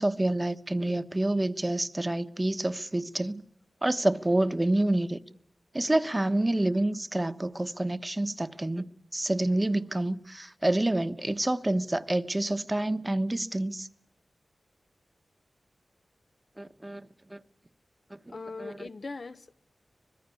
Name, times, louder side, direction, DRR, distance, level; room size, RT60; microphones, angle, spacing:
voice 1, 0.0-3.4 3.8-5.2 5.7-13.9 16.6-17.4 18.1-18.3 18.6-18.7, right 1 dB, 25° right, 1.1 m, -28 dB
voice 2, 18.3-19.5, left 3 dB, 60° left, 1.1 m, -40 dB
24.5 x 21.0 x 8.4 m
cardioid pair, 50°, 0 cm